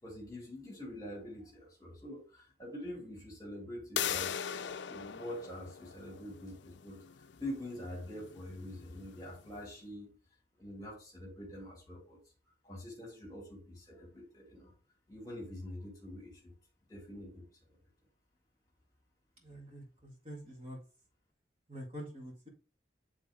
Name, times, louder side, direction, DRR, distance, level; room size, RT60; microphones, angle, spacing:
voice 1, 0.0-7.0 7.4-10.1 10.6-12.2 12.6-14.7 15.1-16.5 16.9-17.4, left 1 dB, 20° left, -1 dB, 2.5 m, -45 dB
sound 1, 4.0-9.5, left 9 dB, 80° left, 0.4 m, -41 dB
voice 2, 19.4-20.8 21.7-22.5, equal, 30° right, -2 dB, 2.1 m, -46 dB
9.6 x 3.6 x 3.7 m, 0.36 s
head